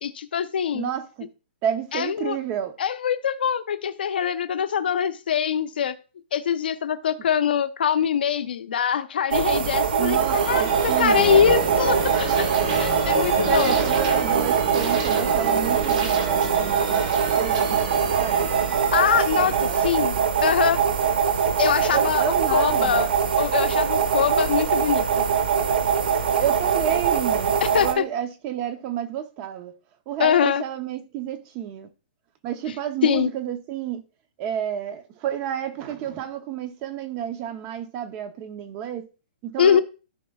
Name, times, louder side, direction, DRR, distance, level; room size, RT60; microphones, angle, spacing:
voice 1, 0.0-0.9 1.9-2.4 2.8-5.9 6.3-10.2 10.4-10.6 11.0-12.5 12.7-13.8 18.9-20.1 20.4-20.8 21.5-23.1 23.4-25.3 27.6-28.0 30.2-30.6 33.0-33.3 39.6-39.8, left 8 dB, 70° left, 0.8 m, -23 dB
voice 2, 0.7-1.3 1.6-2.8 10.0-11.3 13.4-18.5 19.4-19.9 21.9-23.1 26.4-29.7 30.1-31.9 32.4-34.0 34.4-39.1 39.4-39.8, right 10 dB, 25° right, 0.7 m, -30 dB
sound 1, 9.3-27.9, right 7 dB, 85° right, 1.2 m, -23 dB
sound 2, 9.5-21.0, right 3 dB, 45° right, 1.7 m, -29 dB
14.5 x 4.9 x 2.3 m
hypercardioid pair, 170°, 5 cm